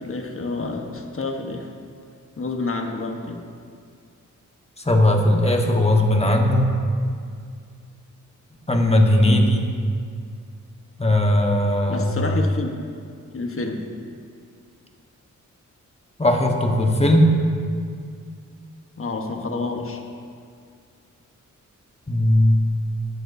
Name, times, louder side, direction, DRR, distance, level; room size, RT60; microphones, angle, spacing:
voice 1, 0.0-1.7 2.4-3.4 9.2-9.5 11.9-12.9 13.3-13.8 19.0-20.0, left 3 dB, 45° left, 3 dB, 1.3 m, -29 dB
voice 2, 4.8-6.7 8.7-9.6 11.0-12.1 16.2-17.3 22.1-22.6, left 1 dB, 20° left, 2 dB, 1.4 m, -18 dB
14.0 x 11.0 x 2.7 m, 2.3 s
cardioid pair, 75°, 32 cm